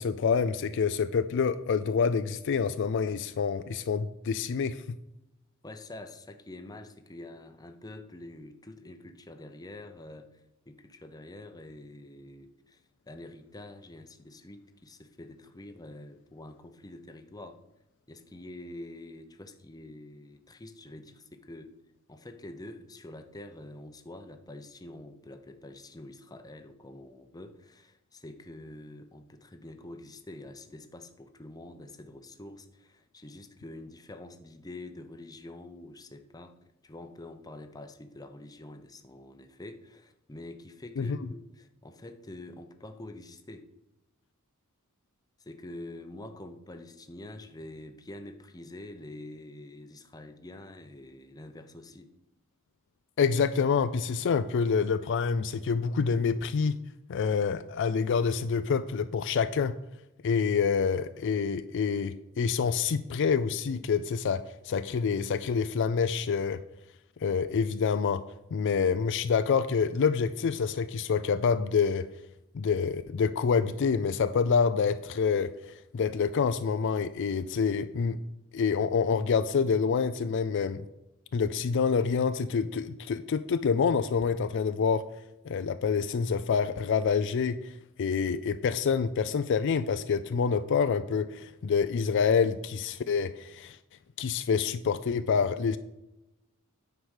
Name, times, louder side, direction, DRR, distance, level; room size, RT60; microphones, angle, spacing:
voice 1, 0.0-4.8 41.0-41.2 53.2-56.8 57.1-59.7 60.2-66.6 67.2-68.2 68.5-72.1 72.5-75.5 75.9-78.2 78.5-80.8 81.3-85.0 85.4-87.7 88.0-93.8 94.2-95.8, left 6 dB, 60° left, 12 dB, 0.4 m, -27 dB
voice 2, 5.6-10.4 10.7-17.6 18.1-21.7 22.1-36.6 36.8-43.6 45.4-52.1, left 1 dB, 15° left, 7 dB, 0.7 m, -46 dB
9.5 x 4.8 x 6.4 m, 0.91 s
head